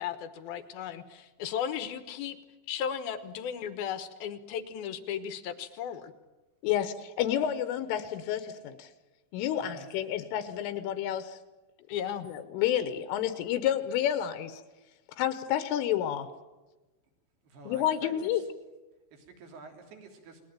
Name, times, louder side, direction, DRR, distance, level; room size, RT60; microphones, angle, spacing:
voice 1, 0.0-2.4 2.7-6.1 11.9-12.3, left 8 dB, 65° left, 11 dB, 2.5 m, -35 dB
voice 2, 6.6-8.9 9.3-11.4 12.2-14.6 15.2-16.3 17.7-18.4, left 10 dB, 85° left, 11 dB, 3.8 m, -30 dB
voice 3, 17.5-18.1 19.1-20.4, right 3 dB, 55° right, 3 dB, 5.3 m, -47 dB
30.0 x 20.0 x 9.1 m, 1.1 s
omnidirectional pair, 5.6 m